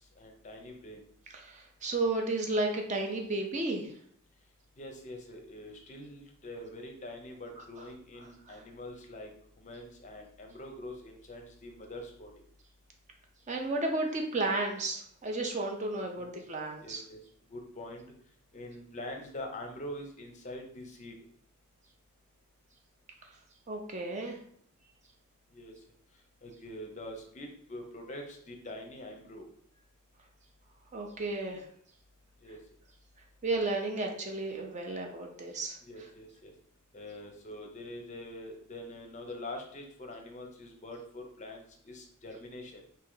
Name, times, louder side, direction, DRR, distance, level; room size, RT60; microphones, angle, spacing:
voice 1, 0.2-1.0 4.8-9.3 9.6-12.3 16.1-16.3 16.8-17.2 17.5-18.0 18.5-21.2 25.5-25.7 26.4-29.5 32.4-32.6 35.8-36.5 36.9-42.8, left 1 dB, 35° left, 3 dB, 0.6 m, -44 dB
voice 2, 1.4-3.9 8.5-8.6 13.5-17.0 23.7-24.4 30.9-31.6 33.4-35.8, right 2 dB, 35° right, 2 dB, 0.5 m, -33 dB
3.3 x 2.6 x 3.8 m, 0.63 s
head